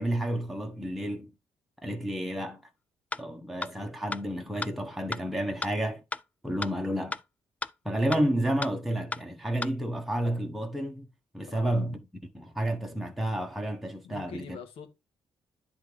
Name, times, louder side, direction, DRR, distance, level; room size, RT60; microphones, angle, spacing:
voice 1, 0.0-1.3 1.8-2.7 3.2-6.0 6.4-7.2 7.8-11.1 11.3-12.0 12.3-14.6, right 1 dB, ahead, 1.1 m, -30 dB
sound 1, 3.1-3.2 3.6-3.7 4.1-4.2 4.6-4.7 5.1-5.2 5.6-5.7 6.1-6.2 6.6-6.7 7.1-7.2 7.6-7.7 8.1-8.2 8.6-8.7 9.1-9.2 9.6-9.7, left 3 dB, 15° left, 0.3 m, -32 dB
voice 2, 11.5-11.8 14.0-15.0, left 6 dB, 85° left, 1.5 m, -44 dB
10.0 x 3.4 x 5.0 m
cardioid pair, 130°, 9 cm